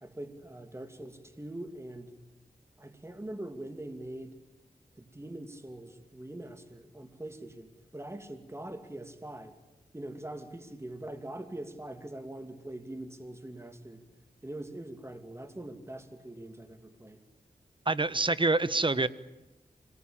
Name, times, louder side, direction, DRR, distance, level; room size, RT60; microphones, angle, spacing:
voice 1, 0.0-2.1 2.8-4.4 5.0-9.6 9.9-14.0 14.4-17.2, right 1 dB, 15° right, 7 dB, 2.7 m, -43 dB
voice 2, 17.9-19.1, right 3 dB, 35° right, 14 dB, 1.1 m, -26 dB
25.5 x 20.0 x 8.9 m, 1.0 s
cardioid pair, 60°, 15 cm